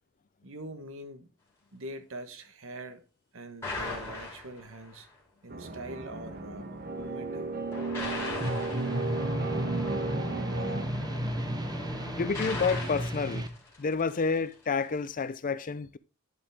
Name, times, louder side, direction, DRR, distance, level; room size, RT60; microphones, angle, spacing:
voice 1, 0.4-1.3 1.7-3.0 3.3-5.1 5.4-6.7 7.0-7.5, right 1 dB, 65° right, 1.3 m, -43 dB
sound 1, 3.6-5.0 7.7-14.3, left 2 dB, 10° left, 3.1 m, -39 dB
sound 2, 5.5-10.8, right 3 dB, 45° right, 1.2 m, -35 dB
sound 3, 8.4-13.5, right 1 dB, 20° right, 0.9 m, -33 dB
voice 2, 12.2-13.4 13.8-16.0, left 5 dB, 40° left, 0.5 m, -29 dB
11.0 x 5.3 x 3.5 m
head